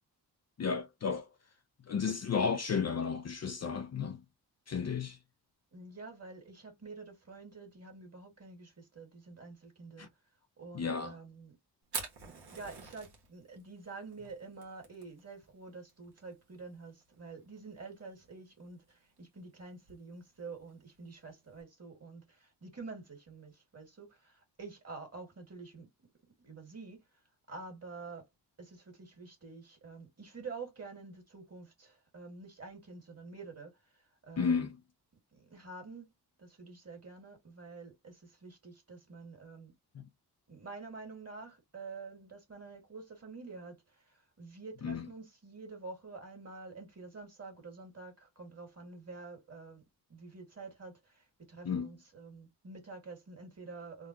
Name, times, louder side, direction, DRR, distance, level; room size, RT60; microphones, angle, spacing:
voice 1, 0.6-1.3 1.9-4.2 4.7-5.2 10.0-10.1 10.7-11.2 34.4-34.8 39.9-40.0 44.8-45.1 51.6-51.9, left 6 dB, 40° left, 0.5 m, -33 dB
voice 2, 5.7-10.1 10.6-11.6 12.2-27.0 27.5-28.3 28.6-34.6 35.3-36.1 36.4-39.7 40.5-49.8 50.1-54.1, right 4 dB, 40° right, 2.1 m, -48 dB
Fire, 11.8-21.6, right 5 dB, 75° right, 1.5 m, -49 dB
3.6 x 2.3 x 2.9 m
cardioid pair, 75°, 40 cm